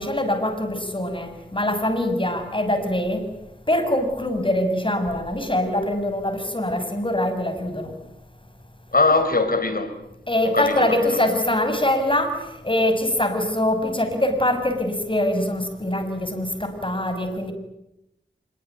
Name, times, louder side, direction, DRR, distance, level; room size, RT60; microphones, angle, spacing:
voice 1, 0.0-3.2 3.7-7.9 10.3-12.3 12.6-17.5, left 1 dB, 25° left, 6.8 m, -23 dB
voice 2, 8.9-9.9 10.4-11.2, left 3 dB, 50° left, 4.4 m, -21 dB
26.5 x 23.5 x 9.4 m
cardioid pair, 45°, 19 cm